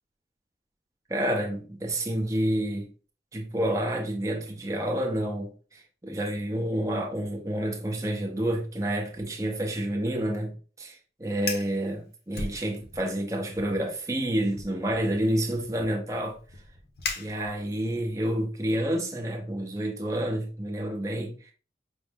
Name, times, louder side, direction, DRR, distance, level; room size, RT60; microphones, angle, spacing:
voice 1, 1.1-2.9 3.3-16.4 17.2-21.5, right 1 dB, 20° right, 0.7 m, -29 dB
Fire, 11.3-11.8 12.3-13.1 13.5-13.8 14.5-17.9, left 3 dB, 60° left, 0.8 m, -38 dB
5.2 x 2.0 x 3.5 m
head